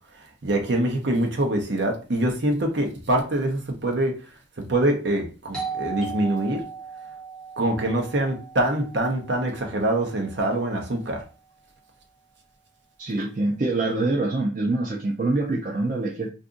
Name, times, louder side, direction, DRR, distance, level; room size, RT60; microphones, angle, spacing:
voice 1, 0.2-4.2 4.7-6.6 7.6-11.2, right 1 dB, 70° right, 0.8 m, -24 dB
Doorbell, 5.5-10.9, right 5 dB, 5° left, 0.6 m, -38 dB
voice 2, 13.0-16.3, right 2 dB, 45° right, 0.4 m, -25 dB
2.5 x 2.5 x 3.7 m
head